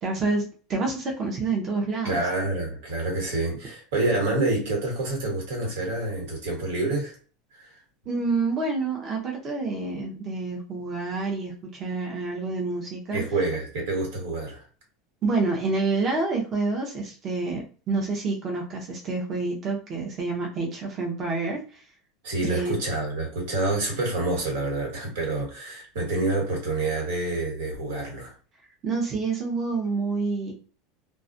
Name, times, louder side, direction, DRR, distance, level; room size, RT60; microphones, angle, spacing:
voice 1, 0.0-2.2 8.1-13.2 15.2-21.8 22.4-22.8 28.8-30.5, right 3 dB, 30° right, 0 dB, 0.6 m, -28 dB
voice 2, 2.0-7.2 7.6-7.7 13.1-14.7 22.2-28.3, right 2 dB, 85° right, 0 dB, 1.3 m, -27 dB
2.3 x 2.0 x 2.6 m, 0.38 s
supercardioid pair, 160°, 0 cm